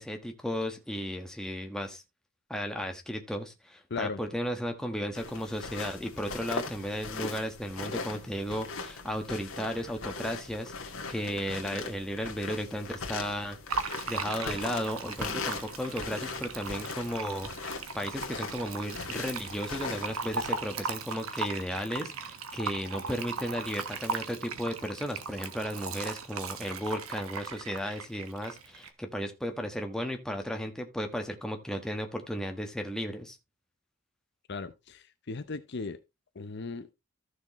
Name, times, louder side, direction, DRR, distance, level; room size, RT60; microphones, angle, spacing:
voice 1, 0.0-2.0 2.5-33.4, equal, 5° left, 1.4 m, -35 dB
sound 1, 5.1-20.5, left 4 dB, 75° left, 2.0 m, -40 dB
Fill (with liquid), 13.7-28.9, right 4 dB, 85° right, 1.3 m, -38 dB
voice 2, 34.5-36.0 36.3-36.9, left 4 dB, 50° left, 0.7 m, -37 dB
14.0 x 6.4 x 3.1 m
head